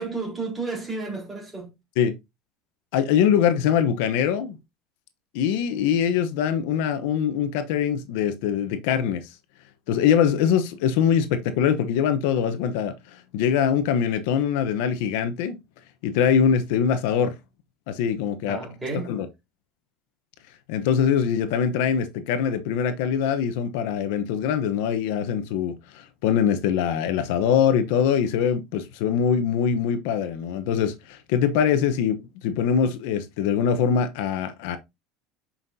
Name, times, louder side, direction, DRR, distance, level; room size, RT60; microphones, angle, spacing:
voice 1, 0.0-1.7 18.5-19.1, right 3 dB, 15° right, 4.1 m, -32 dB
voice 2, 2.9-4.6 5.3-9.3 9.9-15.6 16.0-17.3 17.9-18.6 19.1-19.3 20.7-34.8, left 8 dB, 80° left, 0.9 m, -23 dB
8.0 x 5.7 x 2.7 m
cardioid pair, 145°, 0 cm